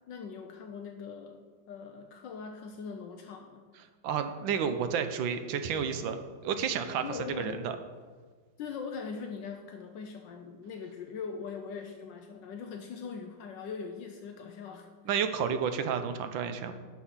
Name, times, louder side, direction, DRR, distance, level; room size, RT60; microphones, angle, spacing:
voice 1, 0.1-1.4 1.7-3.7 7.0-7.6 8.6-14.9, left 5 dB, 75° left, 5 dB, 1.3 m, -41 dB
voice 2, 4.0-7.8 15.1-16.7, right 7 dB, 80° right, 8 dB, 1.5 m, -31 dB
10.0 x 6.3 x 5.6 m, 1.5 s
omnidirectional pair, 2.1 m